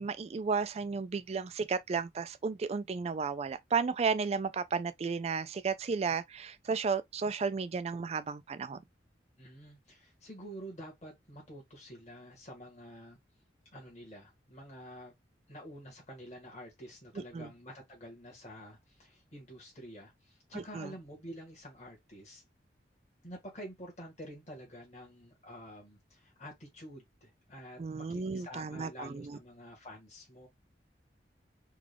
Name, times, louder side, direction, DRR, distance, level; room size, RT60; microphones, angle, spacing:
voice 1, 0.0-8.8 17.3-17.5 20.5-20.9 27.8-29.4, right 5 dB, 35° right, 0.3 m, -33 dB
voice 2, 9.4-13.2 13.7-15.1 15.5-22.4 23.2-27.8 28.1-30.5, equal, 40° left, 1.5 m, -48 dB
3.7 x 2.4 x 3.3 m
head